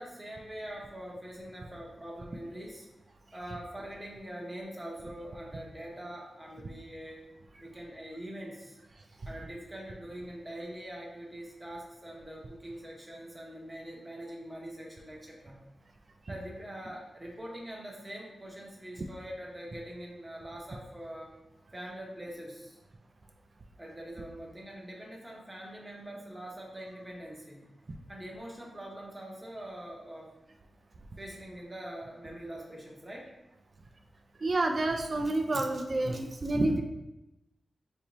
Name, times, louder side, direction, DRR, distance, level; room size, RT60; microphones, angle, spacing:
voice 1, 0.0-2.9 3.3-7.2 7.6-8.8 9.3-15.6 16.3-21.3 21.7-22.8 23.8-27.7 28.1-30.3 31.2-33.3, right 1 dB, 15° right, -3 dB, 0.7 m, -43 dB
voice 2, 34.4-36.8, right 2 dB, 40° right, 4 dB, 0.3 m, -28 dB
4.2 x 2.6 x 2.9 m, 0.95 s
wide cardioid pair, 125°, 0 cm